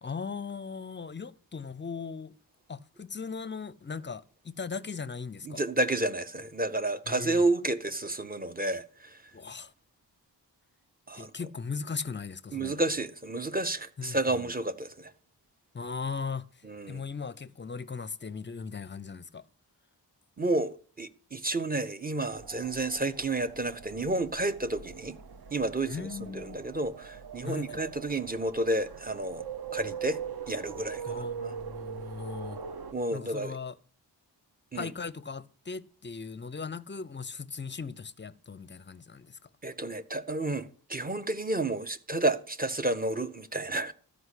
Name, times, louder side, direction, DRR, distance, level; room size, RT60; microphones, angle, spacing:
voice 1, 0.0-2.3 2.7-5.6 7.1-7.4 9.3-9.7 11.1-12.8 14.0-14.5 15.7-16.5 16.9-19.5 25.9-26.6 27.4-27.8 31.1-32.6 33.1-33.8 34.7-39.4, left 5 dB, 25° left, 0.5 m, -38 dB
voice 2, 5.4-9.2 11.1-11.3 12.5-15.1 16.7-17.0 20.4-25.2 25.5-29.4 29.7-30.2 30.5-31.5 32.9-33.6 34.7-34.9 39.6-43.9, right 2 dB, 20° right, 0.7 m, -31 dB
sound 1, 22.3-32.9, right 7 dB, 60° right, 0.8 m, -41 dB
13.0 x 5.2 x 8.2 m
wide cardioid pair, 130°, 42 cm